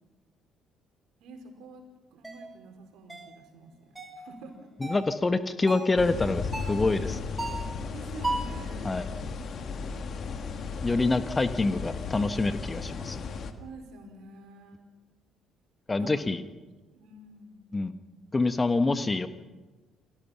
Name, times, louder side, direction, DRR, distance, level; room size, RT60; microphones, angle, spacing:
voice 1, 1.2-1.8 2.1-4.7 6.9-7.2 7.9-9.4 9.8-10.1 13.6-14.8 16.0-16.3 16.9-17.7, right 3 dB, 60° right, 4 dB, 5.0 m, -48 dB
sound 1, 2.2-2.4 3.1-3.4 4.0-4.2 4.8-5.1 5.7-6.0 6.5-6.8 7.4-7.7 8.2-8.6, right 2 dB, 10° right, 5.5 m, -34 dB
voice 2, 4.8-6.4 6.7-7.2 8.8-9.0 10.8-13.2 15.9-16.4 17.7-17.9 18.3-19.3, left 3 dB, 20° left, 11 dB, 1.3 m, -26 dB
sound 2, 6.0-13.5, left 4 dB, 45° left, 2.0 m, -35 dB
29.5 x 22.5 x 5.9 m, 1.3 s
figure-of-eight pair, 50°, 0 cm